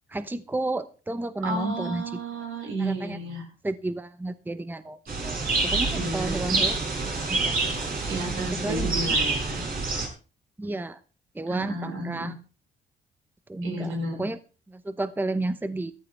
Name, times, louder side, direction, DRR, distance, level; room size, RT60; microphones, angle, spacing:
voice 1, 0.1-2.0 2.8-3.2 3.6-5.4 5.6-6.8 7.2-7.6 8.5-8.9 10.6-11.0 11.3-12.3 13.5-14.4 14.7-15.9, right 2 dB, 10° right, 13 dB, 0.8 m, -31 dB
voice 2, 1.4-3.5 5.9-6.6 8.1-9.6 11.5-12.3 13.6-14.3, right 2 dB, 85° right, 1 dB, 6.3 m, -32 dB
sound 1, 5.1-10.1, right 3 dB, 45° right, 6.0 m, -27 dB
15.0 x 13.5 x 3.4 m, 0.36 s
cardioid pair, 90°, 20 cm